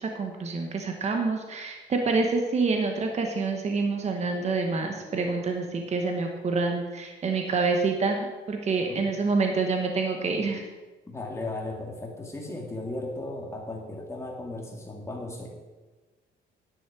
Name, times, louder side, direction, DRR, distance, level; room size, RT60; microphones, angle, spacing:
voice 1, 0.0-10.6, right 4 dB, 35° right, 3 dB, 1.2 m, -27 dB
voice 2, 11.1-15.5, left 2 dB, 15° left, 0 dB, 2.1 m, -36 dB
10.5 x 9.7 x 4.8 m, 1.3 s
cardioid pair, 135°, 20 cm